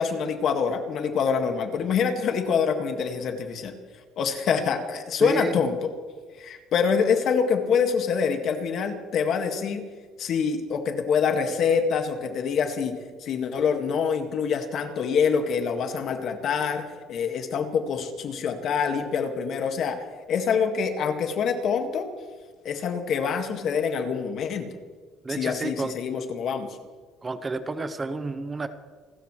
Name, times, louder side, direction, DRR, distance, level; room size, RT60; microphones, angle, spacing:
voice 1, 0.0-3.8 4.2-5.9 6.4-9.9 10.2-22.1 22.6-24.8 25.3-26.8, left 6 dB, 50° left, 5 dB, 1.8 m, -26 dB
voice 2, 5.2-5.6 25.2-26.0 27.2-28.7, right 3 dB, 20° right, 11 dB, 0.8 m, -30 dB
28.5 x 13.5 x 3.2 m, 1.5 s
cardioid pair, 135°, 0 cm